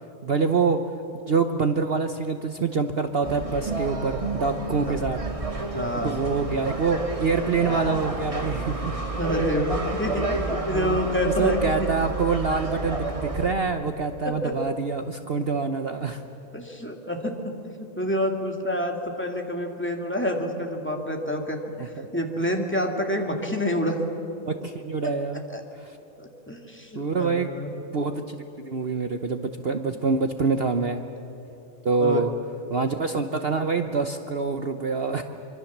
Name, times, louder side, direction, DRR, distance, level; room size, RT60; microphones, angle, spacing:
voice 1, 0.2-0.8 1.3-5.2 6.0-8.9 10.1-10.2 10.7-11.0 11.4-16.2 21.8-22.1 24.4-25.4 25.8-26.0 26.9-31.0 31.8-32.3 32.7-35.2, right 4 dB, 45° right, 7 dB, 1.0 m, -26 dB
sound 1, 3.2-13.5, right 2 dB, 20° right, 1.9 m, -30 dB
voice 2, 5.7-6.2 9.2-11.9 14.2-14.5 16.5-17.5 17.8-24.0 25.0-25.1 25.5-25.6 26.2-27.7 32.0-32.2, left 1 dB, 5° left, 2 dB, 2.2 m, -28 dB
25.0 x 24.5 x 7.3 m, 2.8 s
omnidirectional pair, 1.6 m